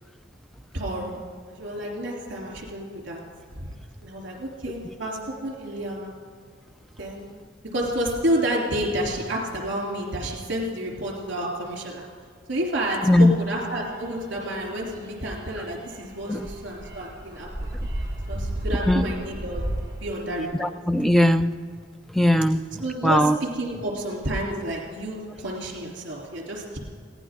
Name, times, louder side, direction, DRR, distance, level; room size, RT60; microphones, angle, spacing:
voice 1, 0.7-1.2 1.5-3.2 3.5-3.8 4.0-6.1 7.0-7.3 7.7-12.0 12.5-17.7 18.3-19.7 20.0-20.7 22.8-26.8, right 1 dB, 60° right, -1 dB, 3.3 m, -30 dB
sound 1, 12.8-20.4, right 1 dB, 20° right, 4.0 m, -34 dB
voice 2, 20.6-21.6 22.1-23.4, left 1 dB, ahead, 10 dB, 0.4 m, -19 dB
21.5 x 16.5 x 3.7 m, 2.1 s
head